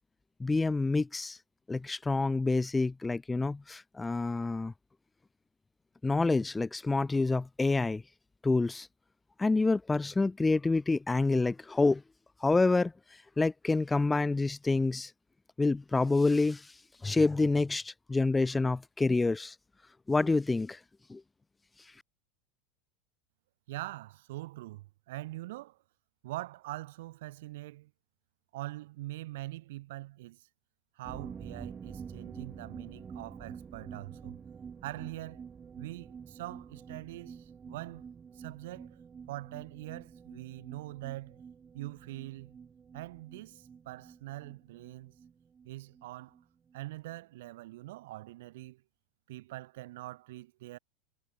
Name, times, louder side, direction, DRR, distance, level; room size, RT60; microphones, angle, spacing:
voice 1, 0.4-1.4 1.7-4.7 6.0-8.0 8.4-8.9 9.4-12.0 12.4-12.9 13.4-15.1 15.6-16.7 17.0-19.5 20.1-20.8 21.1-21.2, left 3 dB, 10° left, 0.8 m, -27 dB
voice 2, 23.7-25.8 26.2-27.9 28.5-30.5 30.9-34.4 34.8-35.4 35.8-38.0 38.3-39.0 39.3-41.4 41.7-42.6 42.9-45.1 45.6-46.4 46.7-48.8 49.3-50.8, right 17 dB, 75° right, 3.2 m, -43 dB
sound 1, 31.0-46.4 46.7-46.8 47.1-47.2, right 6 dB, 15° right, 5.4 m, -48 dB
supercardioid pair, 170°, 0 cm